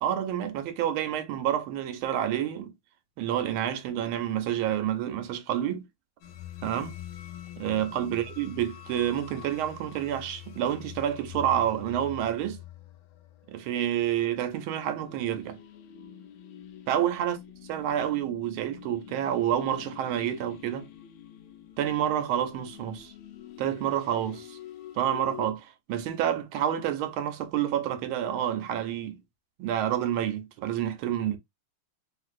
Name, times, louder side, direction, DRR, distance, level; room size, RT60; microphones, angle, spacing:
voice 1, 0.0-2.7 3.2-5.8 6.6-7.0 7.6-12.6 13.5-15.6 16.9-17.4 17.7-20.9 21.8-23.1 23.6-24.6 24.9-29.2 29.6-31.4, right 10 dB, 90° right, 1.6 m, -29 dB
sound 1, 6.2-25.5, left 11 dB, 90° left, 1.4 m, -46 dB
3.7 x 2.5 x 2.4 m
omnidirectional pair, 2.2 m